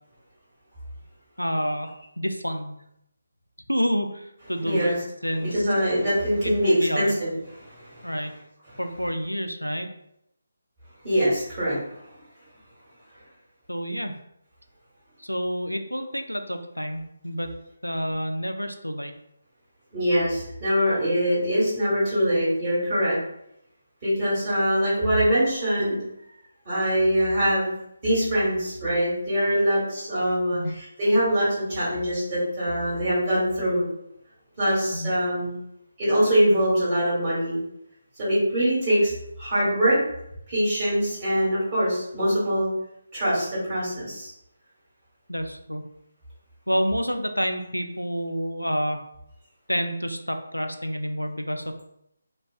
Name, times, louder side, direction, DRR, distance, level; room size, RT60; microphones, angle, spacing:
voice 1, 1.4-2.8 3.7-4.9 5.2-5.6 6.4-7.2 8.0-8.4 8.8-9.9 13.7-14.2 15.2-17.5 17.8-19.1 30.5-30.8 34.9-35.1 45.3-45.9 46.7-49.1 49.7-51.8, equal, 90° left, 6 dB, 0.3 m, -28 dB
voice 2, 4.6-4.9 5.4-7.3 7.6-8.1 8.7-8.8 11.0-11.8 19.9-23.2 24.0-26.0 26.6-27.7 28.0-33.9 34.6-35.6 36.0-37.6 38.2-39.1 39.4-40.0 40.5-42.7 43.1-44.3, equal, 25° right, -10 dB, 1.4 m, -23 dB
2.6 x 2.1 x 2.3 m, 0.77 s
figure-of-eight pair, 150°, 0 cm